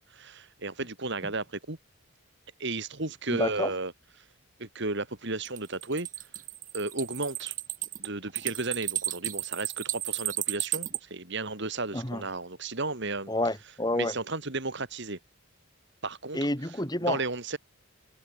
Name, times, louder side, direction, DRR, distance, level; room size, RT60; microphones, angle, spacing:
voice 1, 0.0-1.8 2.6-3.9 4.6-6.1 6.7-7.6 8.0-13.3 13.9-15.2 16.0-16.5 17.0-17.6, right 3 dB, 55° right, 2.6 m, -33 dB
voice 2, 3.3-3.7 11.9-12.2 13.3-14.1 16.3-17.2, left 1 dB, 20° left, 4.1 m, -29 dB
sound 1, 5.4-11.0, right 13 dB, 35° right, 1.9 m, -33 dB
head